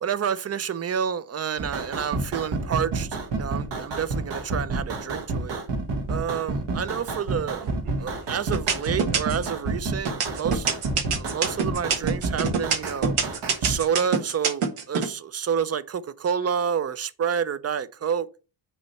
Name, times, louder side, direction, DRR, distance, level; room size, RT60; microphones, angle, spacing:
voice 1, 0.0-5.6 6.1-7.7 8.0-10.7 11.1-13.1 13.6-18.3, right 7 dB, 30° right, 0.5 m, -29 dB
sound 1, 1.6-13.8, right 3 dB, 55° right, 1.3 m, -29 dB
sound 2, 7.6-8.0 8.5-9.5 10.0-15.1, right 6 dB, 80° right, 1.4 m, -25 dB
6.0 x 3.1 x 5.5 m
cardioid pair, 115°, 50 cm